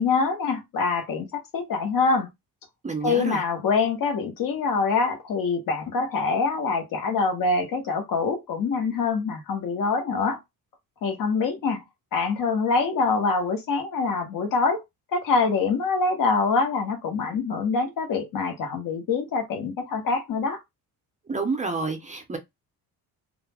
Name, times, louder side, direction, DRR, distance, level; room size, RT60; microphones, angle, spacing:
voice 1, 0.0-2.3 3.0-10.4 11.0-11.8 12.1-14.8 15.1-20.6, left 4 dB, 60° left, 1.0 m, -25 dB
voice 2, 2.8-3.4 21.3-22.4, right 4 dB, 20° right, 0.5 m, -29 dB
2.3 x 2.0 x 3.3 m
cardioid pair, 155°, 38 cm